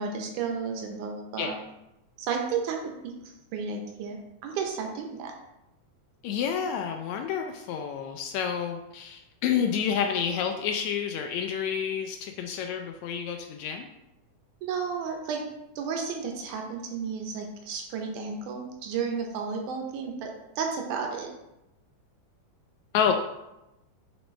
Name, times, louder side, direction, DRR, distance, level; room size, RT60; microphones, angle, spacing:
voice 1, 0.0-1.6 2.2-3.1 3.5-5.3 14.6-15.4 15.8-20.3 20.6-21.3, right 5 dB, 80° right, 2 dB, 2.3 m, -32 dB
voice 2, 6.2-13.9 22.9-23.1, left 7 dB, 80° left, 4 dB, 1.6 m, -29 dB
5.9 x 5.4 x 3.2 m, 0.90 s
omnidirectional pair, 3.6 m